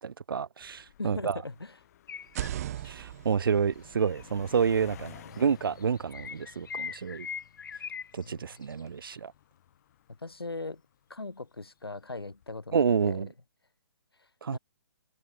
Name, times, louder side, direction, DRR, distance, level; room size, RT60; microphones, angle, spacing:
voice 1, 0.0-1.4 2.8-7.3 8.1-9.3 12.7-13.3 14.4-14.6, right 6 dB, 65° right, 0.5 m, -29 dB
sound 1, 0.6-11.3 12.1-12.5, left 11 dB, 40° left, 5.8 m, -54 dB
voice 2, 1.0-1.8 4.7-5.4 8.2-8.7 10.2-10.8 11.1-13.2 14.2-14.6, left 3 dB, 80° left, 1.6 m, -40 dB
sound 2, 2.1-2.9 4.0-4.2 5.5-8.3 8.6-8.8, left 7 dB, 60° left, 1.0 m, -41 dB
sound 3, 2.2-6.0, right 12 dB, 40° right, 3.2 m, -40 dB
figure-of-eight pair, 130°, 12 cm